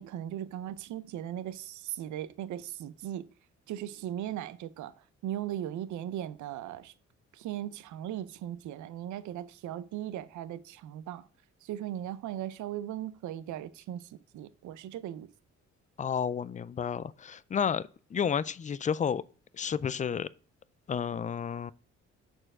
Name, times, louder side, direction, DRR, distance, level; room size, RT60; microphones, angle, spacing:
voice 1, 0.0-3.3 3.7-4.9 5.2-6.9 7.3-11.2 11.6-15.3, right 11 dB, 75° right, 0.6 m, -38 dB
voice 2, 16.0-19.2 19.5-20.3 20.9-21.7, left 7 dB, 25° left, 0.4 m, -31 dB
6.6 x 4.5 x 6.0 m
cardioid pair, 90°, 30 cm